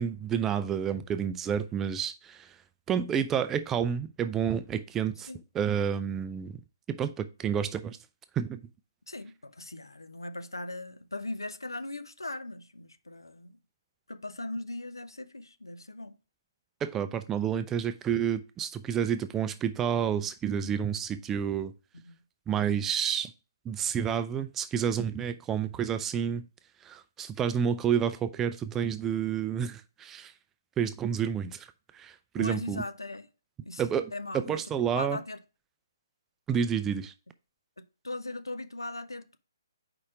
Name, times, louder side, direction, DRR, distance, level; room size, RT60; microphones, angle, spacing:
voice 1, 0.0-2.5 2.9-5.3 5.5-6.6 6.9-8.0 8.4-8.6 16.8-21.7 22.5-23.3 23.7-26.4 26.8-30.3 30.8-31.7 31.9-32.8 33.8-35.2 36.5-37.1, right 8 dB, 10° right, 0.4 m, -29 dB
voice 2, 9.1-13.6 14.1-16.1 22.0-22.2 32.4-33.3 33.6-35.4 37.8-39.4, left 2 dB, 75° left, 0.6 m, -39 dB
4.8 x 4.2 x 4.7 m
figure-of-eight pair, 135°, 2 cm